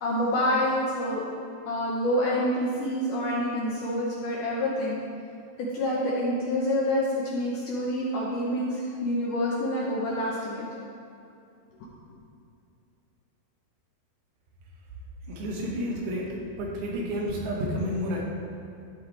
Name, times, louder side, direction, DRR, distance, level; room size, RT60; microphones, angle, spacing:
voice 1, 0.0-1.2 1.7-5.0 5.6-10.7, left 1 dB, 70° left, -5 dB, 2.1 m, -27 dB
voice 2, 15.3-18.2, equal, 80° right, -2 dB, 3.7 m, -30 dB
13.0 x 7.9 x 3.4 m, 2.6 s
omnidirectional pair, 4.8 m